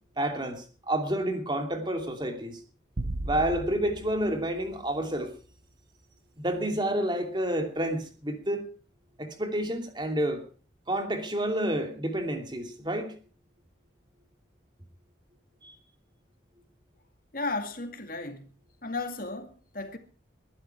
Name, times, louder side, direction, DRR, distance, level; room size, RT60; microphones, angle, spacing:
voice 1, 0.2-2.6 3.2-5.3 6.4-8.7 9.2-10.4 10.9-13.1 15.6-15.7, right 1 dB, 25° right, 2.8 m, -29 dB
sound 1, 3.0-5.5, right 1 dB, 60° right, 0.9 m, -37 dB
voice 2, 17.3-18.5 18.8-20.0, left 3 dB, 50° left, 2.2 m, -34 dB
22.0 x 12.0 x 4.6 m
head